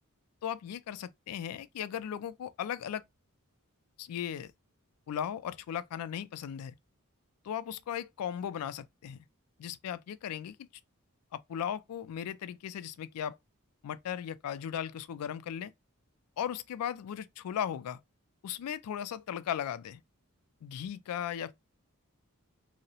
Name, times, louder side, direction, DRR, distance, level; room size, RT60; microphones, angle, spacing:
voice 1, 0.4-3.0 4.0-4.5 5.1-6.7 7.4-9.2 9.6-10.6 11.3-13.4 13.8-15.7 16.4-18.0 18.4-20.0 20.6-21.5, left 9 dB, 85° left, 0.3 m, -37 dB
2.7 x 2.0 x 2.7 m
head